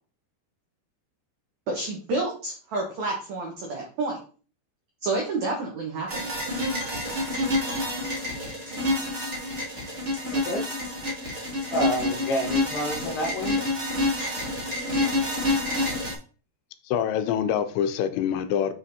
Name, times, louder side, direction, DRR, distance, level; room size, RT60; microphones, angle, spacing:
voice 1, 1.7-4.2 5.0-6.3, right 2 dB, 80° right, 0 dB, 1.6 m, -29 dB
sound 1, 6.1-16.1, left 1 dB, 55° right, 0.7 m, -28 dB
voice 2, 10.3-10.6 11.7-13.7, equal, 70° left, 0 dB, 3.4 m, -28 dB
voice 3, 16.9-18.7, left 9 dB, 90° left, 10 dB, 2.9 m, -25 dB
7.4 x 5.8 x 2.7 m, 0.39 s
omnidirectional pair, 5.1 m